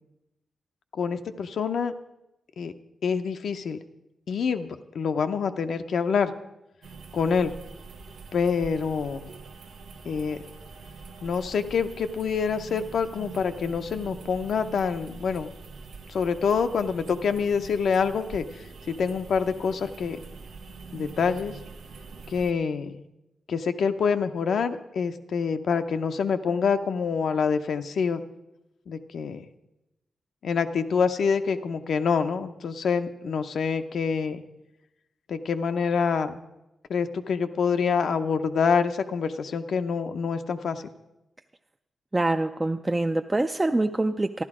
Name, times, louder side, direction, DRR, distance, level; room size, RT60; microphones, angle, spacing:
voice 1, 0.9-1.9 2.6-2.7 3.0-3.8 4.3-6.3 7.1-7.5 8.3-9.3 10.1-10.4 11.2-15.5 16.1-20.2 20.9-21.5 22.3-23.0 23.5-28.2 28.9-29.4 30.4-34.4 35.3-36.4 36.9-40.8, left 6 dB, 75° left, 8 dB, 0.7 m, -26 dB
sound 1, 6.8-22.5, right 4 dB, 90° right, 1.0 m, -44 dB
voice 2, 42.1-44.4, right 2 dB, 20° right, 6 dB, 0.4 m, -25 dB
13.0 x 11.5 x 4.9 m, 0.94 s
cardioid pair, 85°, 0 cm